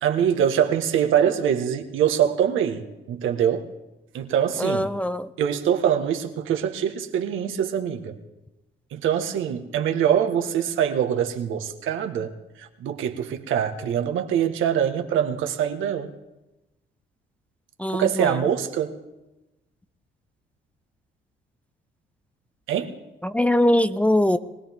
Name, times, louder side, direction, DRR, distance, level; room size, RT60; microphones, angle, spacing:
voice 1, 0.0-3.7 4.1-4.9 5.4-8.2 8.9-12.3 12.6-16.1 17.9-19.0 22.7-22.9, right 9 dB, 85° right, 5 dB, 1.5 m, -24 dB
voice 2, 4.6-5.3 17.8-18.4 23.2-24.4, left 1 dB, 5° left, 12 dB, 0.6 m, -22 dB
23.5 x 17.0 x 3.6 m, 1.0 s
cardioid pair, 90°, 20 cm